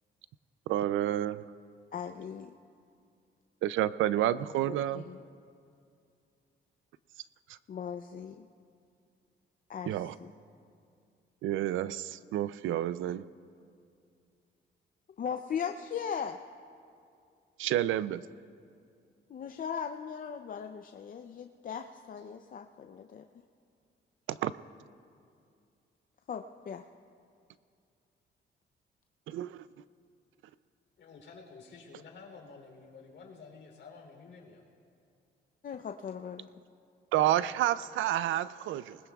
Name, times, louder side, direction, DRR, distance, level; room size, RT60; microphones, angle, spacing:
voice 1, 0.7-1.4 3.6-5.1 9.9-10.2 11.4-13.3 17.6-18.2 24.3-24.5 29.3-29.6 37.1-39.0, right 12 dB, 80° right, 16 dB, 0.4 m, -29 dB
voice 2, 1.9-2.5 4.6-5.2 7.7-8.4 9.7-10.3 15.2-16.4 19.3-23.2 26.3-26.8 35.6-36.5, left 7 dB, 45° left, 5 dB, 0.5 m, -38 dB
voice 3, 31.0-34.6, left 4 dB, 65° left, 0 dB, 3.3 m, -51 dB
20.5 x 20.0 x 2.3 m, 2.4 s
cardioid pair, 90°, 20 cm